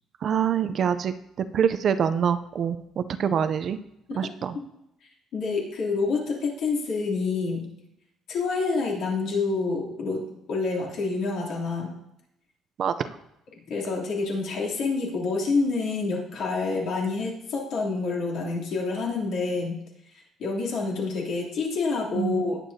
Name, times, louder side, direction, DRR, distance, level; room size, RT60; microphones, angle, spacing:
voice 1, 0.2-1.1 1.5-3.8 4.1-4.6 12.8-13.1 22.1-22.4, right 8 dB, 40° right, 11 dB, 0.5 m, -25 dB
voice 2, 5.3-7.7 8.3-11.9 13.7-19.8 20.4-22.6, left 4 dB, 60° left, -3 dB, 3.0 m, -27 dB
19.0 x 8.3 x 2.7 m, 0.82 s
cardioid pair, 170°, 0 cm